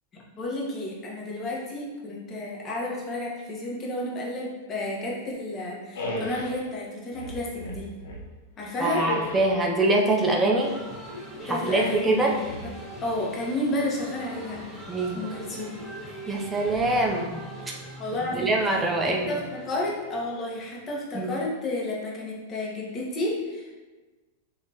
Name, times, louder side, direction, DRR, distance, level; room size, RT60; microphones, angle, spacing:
voice 1, 0.3-7.9 8.6-9.1 11.5-12.6 13.0-14.6 15.1-15.7 18.0-18.6 19.0-23.8, left 1 dB, 30° left, -3 dB, 1.3 m, -31 dB
sound 1, 5.9-6.6 7.1-8.3 8.8-9.6 11.5-12.0 12.4-13.1, left 1 dB, 80° left, 0.9 m, -35 dB
voice 2, 8.8-10.8 11.4-12.4 14.9-15.2 16.3-17.4 18.3-19.3 21.1-21.4, right 2 dB, 10° right, -1 dB, 0.5 m, -24 dB
sound 2, 10.6-20.9, equal, 10° left, 1.5 m, -42 dB
6.3 x 2.9 x 2.9 m, 1.3 s
hypercardioid pair, 125°, 0 cm